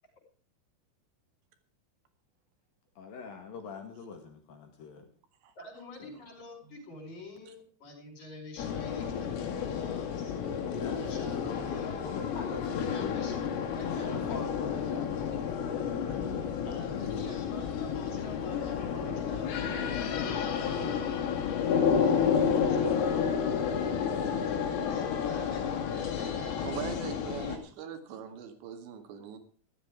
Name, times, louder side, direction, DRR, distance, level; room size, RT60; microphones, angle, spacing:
voice 1, 3.0-5.1 6.0-6.2 10.7-11.6 12.0-15.8, left 5 dB, 55° left, 5 dB, 3.1 m, -43 dB
voice 2, 5.6-10.3 11.0-12.0 12.9-14.7 15.1-15.5 16.6-21.0 22.1-23.9 24.4-27.5, left 1 dB, 35° left, 3 dB, 6.1 m, -48 dB
sound 1, 8.6-27.6, left 7 dB, 80° left, 4.8 m, -31 dB
voice 3, 26.6-29.4, right 7 dB, 65° right, 8 dB, 3.9 m, -41 dB
15.5 x 13.0 x 4.9 m, 0.44 s
omnidirectional pair, 5.8 m